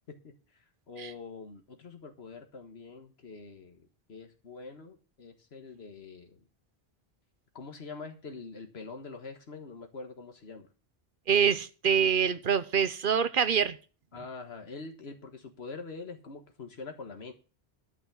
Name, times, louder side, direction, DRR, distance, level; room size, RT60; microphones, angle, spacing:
voice 1, 0.9-6.4 7.6-10.7 14.1-17.3, left 4 dB, 90° left, 5 dB, 1.7 m, -44 dB
voice 2, 11.3-13.8, right 7 dB, 60° right, 14 dB, 1.0 m, -25 dB
12.0 x 5.9 x 7.1 m, 0.35 s
omnidirectional pair, 1.0 m